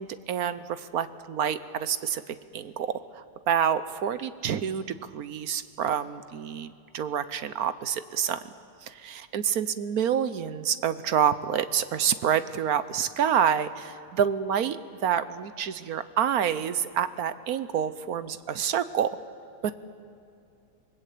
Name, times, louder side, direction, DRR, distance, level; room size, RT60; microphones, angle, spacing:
voice 1, 0.0-8.4 8.8-14.8 15.0-19.1 19.6-19.8, right 8 dB, 65° right, 13 dB, 1.2 m, -28 dB
27.5 x 20.5 x 8.4 m, 2.5 s
omnidirectional pair, 1.8 m